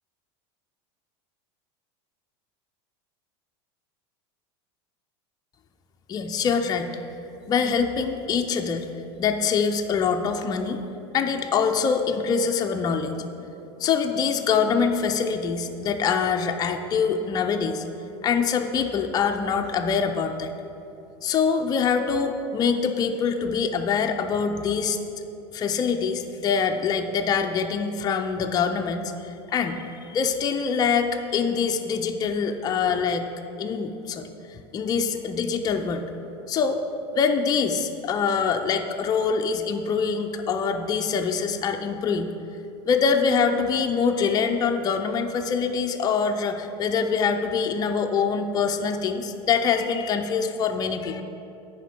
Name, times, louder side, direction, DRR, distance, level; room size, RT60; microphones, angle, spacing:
voice 1, 6.1-7.0 7.5-8.9 9.2-10.8 11.1-13.2 13.8-17.8 18.2-20.5 21.2-25.0 25.5-33.3 33.6-36.0 36.5-36.8 37.1-42.3 42.9-51.2, left 6 dB, 30° left, 5 dB, 0.4 m, -24 dB
10.0 x 4.5 x 4.4 m, 2.9 s
hypercardioid pair, 100°, 14 cm